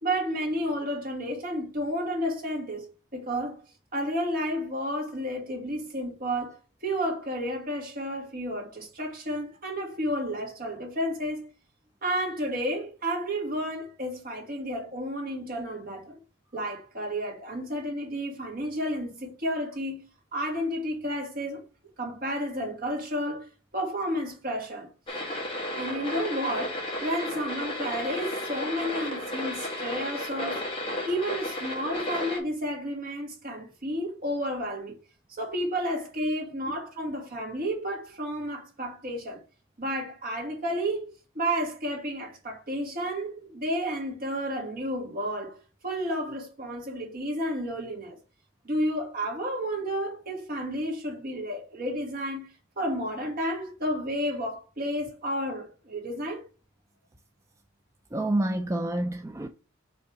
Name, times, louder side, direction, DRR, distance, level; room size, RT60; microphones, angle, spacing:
voice 1, 0.0-3.6 3.9-6.6 6.8-11.5 12.0-16.2 16.5-20.0 20.3-21.6 22.0-25.2 25.8-30.7 31.0-34.9 35.3-39.4 39.8-45.6 45.8-48.2 48.6-52.5 52.8-56.4, equal, 45° right, 2.6 m, -31 dB
sound 1, 25.1-32.4, left 1 dB, 25° left, 2.2 m, -33 dB
voice 2, 58.1-59.5, right 1 dB, 15° right, 0.4 m, -28 dB
5.4 x 3.6 x 5.2 m
head